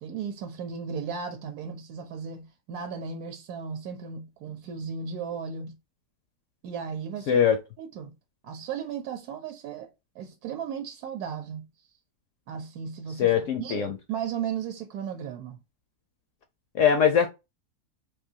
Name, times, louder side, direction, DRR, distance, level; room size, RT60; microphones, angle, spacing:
voice 1, 0.0-5.7 6.6-7.4 7.8-8.1 8.4-9.9 10.2-11.7 12.5-15.6, right 7 dB, 70° right, 1.1 m, -35 dB
voice 2, 7.3-7.6 13.2-14.0 16.8-17.3, left 8 dB, 70° left, 0.7 m, -21 dB
3.7 x 2.6 x 2.7 m
omnidirectional pair, 1.7 m